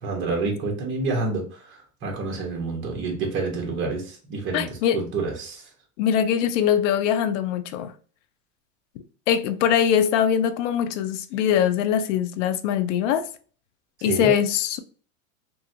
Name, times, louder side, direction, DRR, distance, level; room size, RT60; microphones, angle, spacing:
voice 1, 0.0-4.6 4.9-5.6 14.0-14.3, right 3 dB, 30° right, 1.2 m, -28 dB
voice 2, 4.5-5.0 6.0-7.9 9.3-13.2 14.0-14.8, left 9 dB, 65° left, 0.5 m, -22 dB
3.0 x 2.4 x 2.7 m
supercardioid pair, 135°, 41 cm